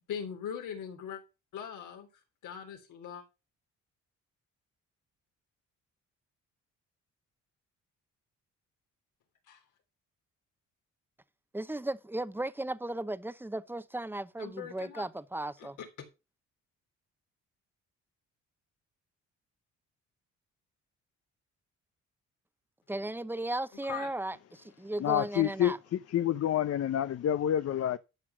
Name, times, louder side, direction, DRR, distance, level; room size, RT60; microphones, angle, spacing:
voice 1, 0.1-1.2 1.5-2.1 2.4-3.2 9.5-9.6 14.4-15.1 15.6-16.1 23.9-24.1, left 8 dB, 80° left, 3.3 m, -40 dB
voice 2, 11.5-15.8 22.9-25.8, right 1 dB, 5° right, 0.9 m, -36 dB
voice 3, 25.0-28.0, left 11 dB, 55° left, 0.7 m, -28 dB
12.5 x 5.8 x 6.2 m
cardioid pair, 90°, 30 cm